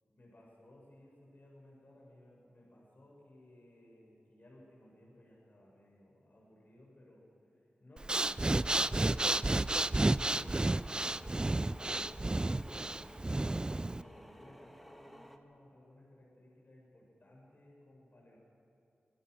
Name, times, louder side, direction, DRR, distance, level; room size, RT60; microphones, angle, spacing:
voice 1, 0.1-7.3 7.8-12.9 13.9-18.4, left 1 dB, 50° left, -3 dB, 6.8 m, -60 dB
Breathing, 8.0-14.0, right 2 dB, 25° right, 0.4 m, -31 dB
sound 1, 8.1-15.4, equal, ahead, 1.6 m, -54 dB
24.5 x 17.0 x 6.5 m, 2.9 s
wide cardioid pair, 70°, 4 cm